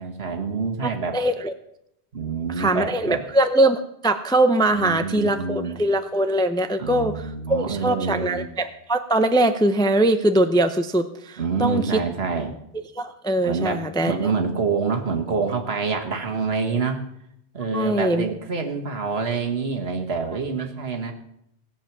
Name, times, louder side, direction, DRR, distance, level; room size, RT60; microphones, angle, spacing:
voice 1, 0.0-1.2 2.1-3.2 4.7-5.8 6.8-8.5 11.4-12.6 13.4-17.0 17.5-21.1, right 5 dB, 65° right, 4 dB, 1.7 m, -27 dB
voice 2, 1.1-1.5 2.6-7.1 7.5-12.0 13.0-14.3 17.7-18.3, right 1 dB, 5° left, 8 dB, 0.5 m, -21 dB
18.0 x 7.4 x 6.0 m, 0.77 s
omnidirectional pair, 1.1 m